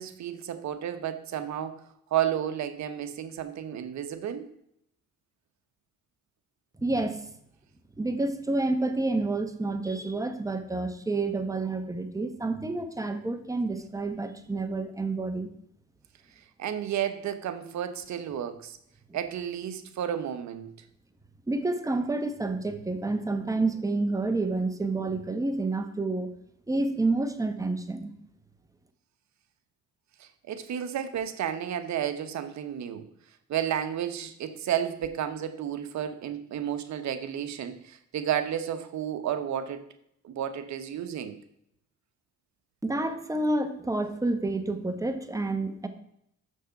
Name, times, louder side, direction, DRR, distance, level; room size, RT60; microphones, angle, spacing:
voice 1, 0.0-1.8 2.1-4.5 16.6-18.8 19.1-20.7 30.2-33.0 33.5-39.9 40.2-41.4, right 10 dB, 65° right, 9 dB, 1.0 m, -32 dB
voice 2, 6.8-7.2 8.0-15.5 21.5-26.3 26.7-28.1 42.8-45.9, right 2 dB, 10° right, 8 dB, 1.0 m, -29 dB
6.5 x 6.3 x 5.7 m, 0.73 s
cardioid pair, 90°, 30 cm